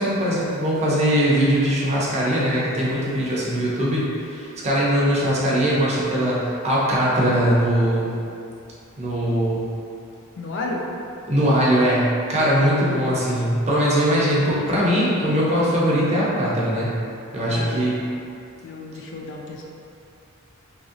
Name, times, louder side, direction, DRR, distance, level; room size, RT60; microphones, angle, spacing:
voice 1, 0.0-8.1 9.0-9.6 11.3-16.9 17.3-18.0, equal, 30° right, -6 dB, 0.6 m, -21 dB
voice 2, 10.4-10.8 17.5-17.8 18.6-19.6, left 3 dB, 55° left, -1 dB, 0.4 m, -32 dB
2.9 x 2.6 x 2.4 m, 2.5 s
head